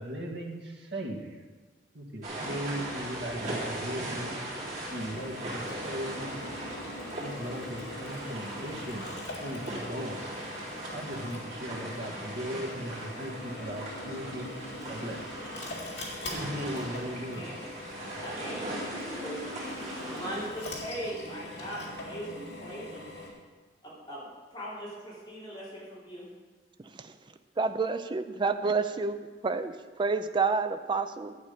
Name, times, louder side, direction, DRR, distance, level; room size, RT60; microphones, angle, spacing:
voice 1, 0.0-1.4 1.9-6.7 7.2-10.6 10.9-14.5 14.9-15.4 16.2-17.5, equal, 70° right, 0 dB, 1.7 m, -38 dB
sound 1, 2.2-20.5, right 1 dB, 45° right, 3.9 m, -39 dB
Drill, 4.8-23.3, left 2 dB, 70° left, 2.6 m, -42 dB
voice 2, 17.4-17.7 18.2-19.6 19.9-23.0 23.8-26.2, equal, 25° left, -8 dB, 3.3 m, -40 dB
voice 3, 27.6-29.2 29.4-31.4, right 4 dB, 25° right, 9 dB, 0.4 m, -29 dB
11.5 x 8.5 x 5.0 m, 1.3 s
head